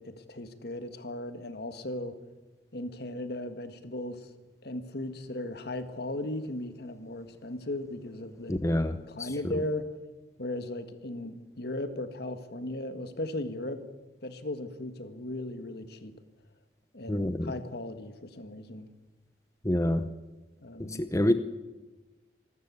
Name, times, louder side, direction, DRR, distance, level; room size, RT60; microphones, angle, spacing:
voice 1, 0.0-2.2 2.7-4.3 4.6-8.6 9.1-9.9 10.4-13.8 14.2-16.1 16.9-18.9 20.6-21.1, left 1 dB, 60° left, 9 dB, 1.7 m, -37 dB
voice 2, 8.5-9.3 17.1-17.5 19.6-20.1 20.8-21.3, left 1 dB, 15° left, 10 dB, 0.7 m, -27 dB
26.0 x 13.5 x 8.3 m, 1.2 s
head